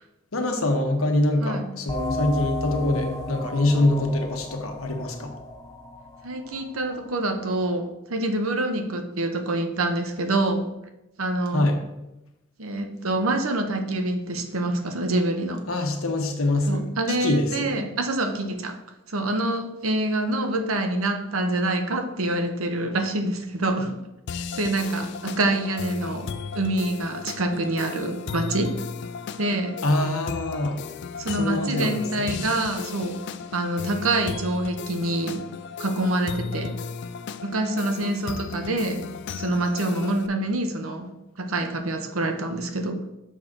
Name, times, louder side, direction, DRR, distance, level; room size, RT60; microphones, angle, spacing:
voice 1, 0.3-5.3 11.5-11.8 15.7-17.8 29.8-30.9 31.4-32.4, left 2 dB, 90° left, 4 dB, 1.2 m, -24 dB
voice 2, 1.4-1.8 6.2-10.7 11.2-11.7 12.6-15.6 16.7-18.8 19.1-24.0 24.5-26.3 26.5-28.8 29.4-29.8 31.2-33.3 33.5-35.4 35.8-36.8 37.4-39.1 39.4-43.0, right 2 dB, 85° right, 6 dB, 0.9 m, -26 dB
sound 1, 1.9-7.2, left 2 dB, 15° left, 0.8 m, -33 dB
sound 2, 24.3-40.3, left 5 dB, 55° left, 0.4 m, -35 dB
6.8 x 3.8 x 6.0 m, 0.94 s
head